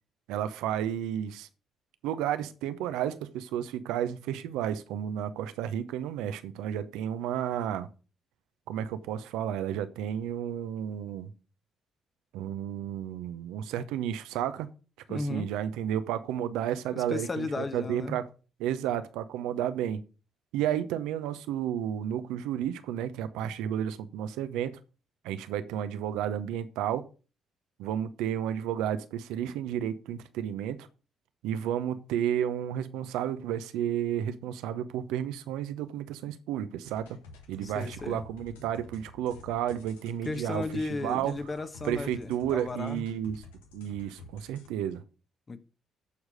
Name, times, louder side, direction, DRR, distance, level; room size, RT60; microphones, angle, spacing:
voice 1, 0.3-1.5 2.0-7.9 8.7-11.3 12.3-14.7 15.1-18.3 18.6-20.0 20.5-24.8 25.2-27.1 27.8-30.9 31.4-37.2 37.5-40.6 41.0-41.3 41.8-43.4 43.7-45.0, right 10 dB, 75° right, 0.8 m, -32 dB
voice 2, 15.1-15.5 17.0-18.2 37.6-38.2 40.2-43.0 45.5-45.6, left 3 dB, 35° left, 1.2 m, -35 dB
sound 1, 36.8-44.7, left 3 dB, 85° left, 1.3 m, -51 dB
14.0 x 4.8 x 5.0 m
hypercardioid pair, 45°, 0 cm